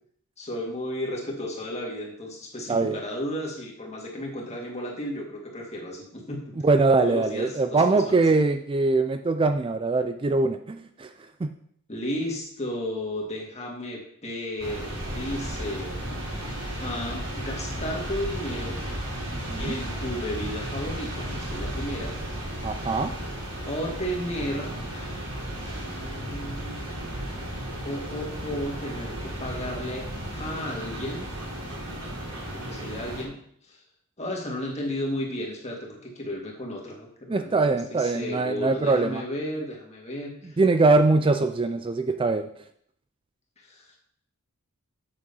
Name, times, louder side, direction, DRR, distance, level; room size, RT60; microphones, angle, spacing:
voice 1, 0.4-6.4 7.0-8.2 11.9-15.9 16.8-18.8 19.6-22.2 23.7-26.9 27.8-30.1 30.3-31.3 32.5-33.4 33.7-33.8 34.2-37.6 37.9-40.6 43.6-44.0, left 1 dB, 30° left, -1 dB, 2.1 m, -34 dB
voice 2, 6.6-11.1 11.4-11.5 19.3-19.7 22.6-23.1 37.3-39.2 40.6-42.5, right 3 dB, 25° right, 8 dB, 0.4 m, -22 dB
sound 1, 14.6-33.2, right 1 dB, 90° right, 4.3 m, -34 dB
7.7 x 6.2 x 5.5 m, 0.67 s
head